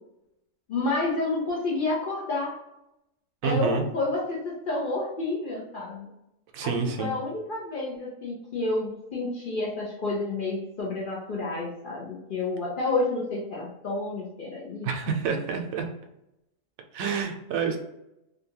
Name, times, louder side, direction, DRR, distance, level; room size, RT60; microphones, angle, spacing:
voice 1, 0.7-2.6 3.4-6.1 6.6-6.7 7.0-14.9, left 2 dB, 55° left, -4 dB, 0.6 m, -29 dB
voice 2, 3.4-3.8 6.5-7.1 14.8-15.9 16.9-17.8, right 6 dB, 90° right, 4 dB, 1.0 m, -28 dB
2.7 x 2.2 x 2.7 m, 0.88 s
omnidirectional pair, 1.4 m